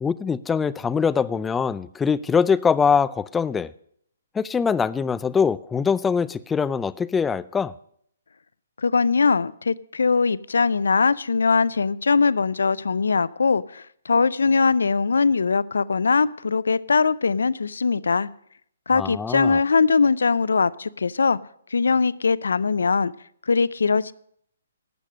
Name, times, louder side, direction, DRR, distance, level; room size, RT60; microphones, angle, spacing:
voice 1, 0.0-3.7 4.4-7.7 18.9-19.6, left 6 dB, 10° left, 0.4 m, -23 dB
voice 2, 8.8-18.3 18.9-21.4 21.7-23.1 23.5-24.1, left 4 dB, 75° left, 0.4 m, -21 dB
12.0 x 8.3 x 6.2 m
figure-of-eight pair, 135°, 0 cm